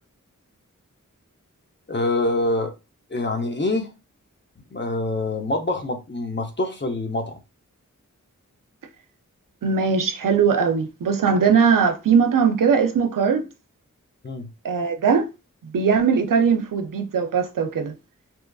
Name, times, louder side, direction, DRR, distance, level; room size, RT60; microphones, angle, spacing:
voice 1, 1.9-2.7 3.1-3.9 4.7-7.4 14.2-14.5, left 2 dB, 35° left, 0.6 m, -25 dB
voice 2, 9.6-13.5 14.6-15.3 15.7-17.9, right 6 dB, 90° right, 0.5 m, -20 dB
2.8 x 2.4 x 2.3 m
wide cardioid pair, 40°, 32 cm